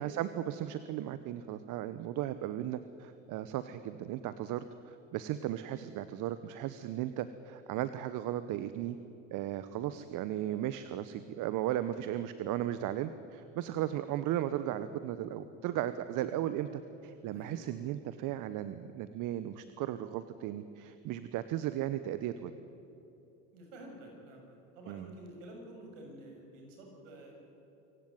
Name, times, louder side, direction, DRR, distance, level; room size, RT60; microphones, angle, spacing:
voice 1, 0.0-9.0 9.3-22.5 24.9-25.1, right 12 dB, 55° right, 13 dB, 1.1 m, -36 dB
voice 2, 17.3-17.6 23.5-24.4 24.7-27.3, right 1 dB, 75° right, 1 dB, 6.6 m, -50 dB
25.0 x 16.0 x 9.2 m, 3.0 s
hypercardioid pair, 75°, 38 cm